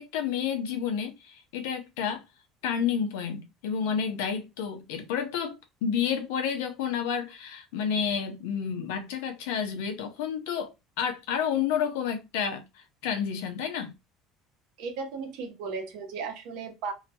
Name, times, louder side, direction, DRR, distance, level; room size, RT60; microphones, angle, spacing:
voice 1, 0.0-2.2 2.6-13.9, left 7 dB, 90° left, 0.6 m, -30 dB
voice 2, 14.8-16.9, right 5 dB, 75° right, 0.9 m, -35 dB
2.8 x 2.1 x 2.8 m
cardioid pair, 120°, 0 cm